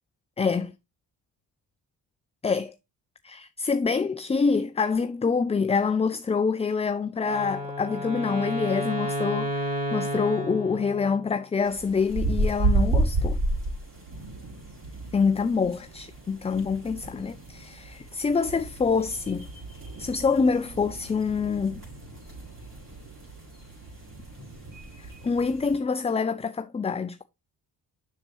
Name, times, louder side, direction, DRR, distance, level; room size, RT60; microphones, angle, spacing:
voice 1, 0.4-0.7 2.4-2.7 3.2-13.4 15.1-19.5 20.0-21.8 25.0-27.2, left 5 dB, 15° left, 0.4 m, -26 dB
Wind instrument woodwind instrument, 7.2-11.4, equal, 20° right, 3.5 m, -31 dB
sound 1, 11.6-25.8, right 2 dB, 50° right, 5.1 m, -32 dB
7.0 x 6.7 x 3.1 m
supercardioid pair, 60°, 43 cm